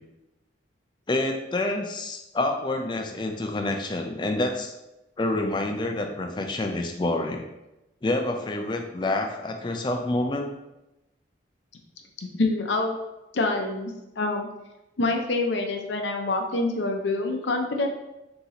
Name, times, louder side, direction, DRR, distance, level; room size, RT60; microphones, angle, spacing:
voice 1, 1.1-4.7 5.2-7.5 8.0-10.5, left 2 dB, 25° left, 4 dB, 0.4 m, -27 dB
voice 2, 12.2-13.0 13.3-14.5 15.0-17.9, left 2 dB, 70° left, 3 dB, 0.6 m, -26 dB
4.0 x 2.9 x 4.0 m, 0.97 s
head